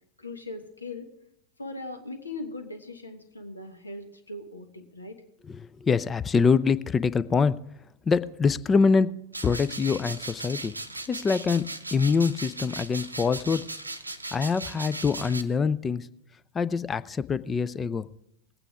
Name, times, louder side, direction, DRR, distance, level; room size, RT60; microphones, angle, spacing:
voice 1, 0.2-1.1 1.6-5.2, left 2 dB, 80° left, 7 dB, 1.4 m, -39 dB
voice 2, 5.5-7.6 8.1-9.1 9.4-10.7 11.1-11.6 11.9-13.6 14.3-16.1 16.5-18.1, left 5 dB, 20° left, 17 dB, 0.4 m, -24 dB
sound 1, 9.3-15.4, right 2 dB, 85° right, 0.7 m, -38 dB
20.0 x 9.0 x 3.5 m, 0.81 s
figure-of-eight pair, 90°, 0 cm